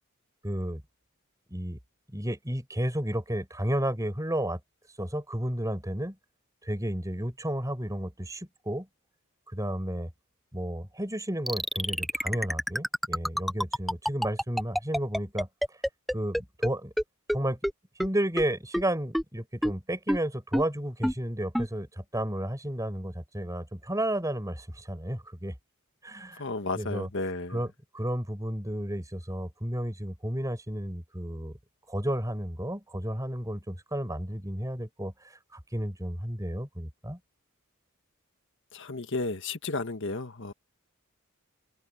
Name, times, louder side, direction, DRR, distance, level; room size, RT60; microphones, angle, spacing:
voice 1, 0.4-0.8 1.5-1.8 2.1-4.6 5.0-6.2 6.6-8.9 9.5-10.1 10.5-15.5 16.1-16.9 17.3-17.6 18.0-25.5 26.0-26.5 26.7-27.1 27.5-31.6 31.9-37.2, right 1 dB, 15° right, 6.2 m, -32 dB
sound 1, 11.5-16.7 17.0-17.1 17.3-17.4 17.6-17.7 18.0-18.1 18.4-18.5 18.7-18.8 19.1-19.2 19.6-19.7 20.1-20.2 20.5-20.6 21.0-21.1 21.5-21.7, equal, ahead, 0.6 m, -26 dB
voice 2, 26.4-27.6 38.7-40.5, left 3 dB, 55° left, 1.7 m, -33 dB
open air
head